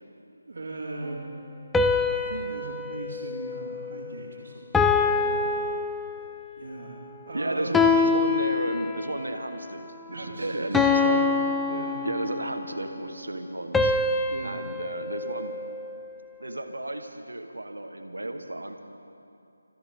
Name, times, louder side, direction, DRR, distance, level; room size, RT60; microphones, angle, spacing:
voice 1, 0.3-1.3 2.1-5.7 6.6-7.9 10.1-11.3 11.7-12.1 14.3-14.6, right 2 dB, 55° right, -7 dB, 2.8 m, -38 dB
sound 1, 1.7-4.2 4.7-6.5 7.7-9.3 10.7-12.6 13.7-16.1, left 4 dB, 5° left, 0.4 m, -25 dB
voice 2, 7.3-11.2 12.0-13.9 14.4-15.6 16.4-18.8, right 1 dB, 85° right, 6 dB, 1.4 m, -33 dB
24.5 x 14.0 x 3.7 m, 2.6 s
figure-of-eight pair, 160°, 0 cm